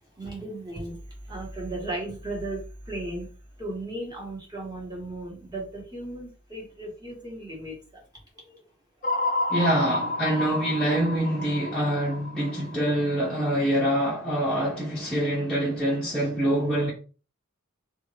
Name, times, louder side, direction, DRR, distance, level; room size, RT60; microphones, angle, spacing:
voice 1, 0.2-3.3 3.6-8.0 8.3-8.6, right 1 dB, 20° right, 1.3 m, -36 dB
sound 1, 9.0-13.3, left 2 dB, 35° left, 0.7 m, -30 dB
voice 2, 9.5-16.9, right 1 dB, 5° left, 0.7 m, -25 dB
2.6 x 2.4 x 3.1 m
head